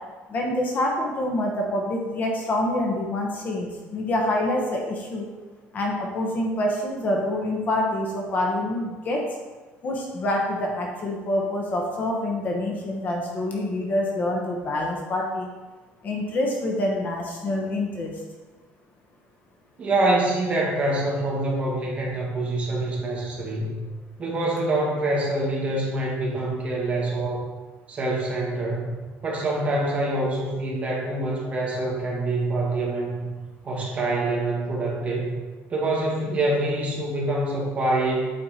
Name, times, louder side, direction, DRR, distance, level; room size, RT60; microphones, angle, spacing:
voice 1, 0.3-5.3 5.7-9.3 9.8-15.5 16.0-18.2, left 1 dB, 35° left, 0 dB, 1.0 m, -26 dB
voice 2, 19.8-23.8 24.2-27.4 27.9-28.9 29.2-33.3 33.6-35.4 35.7-38.3, right 2 dB, 25° right, -4 dB, 1.9 m, -25 dB
8.6 x 4.4 x 4.3 m, 1.3 s
cardioid pair, 160°, 5 cm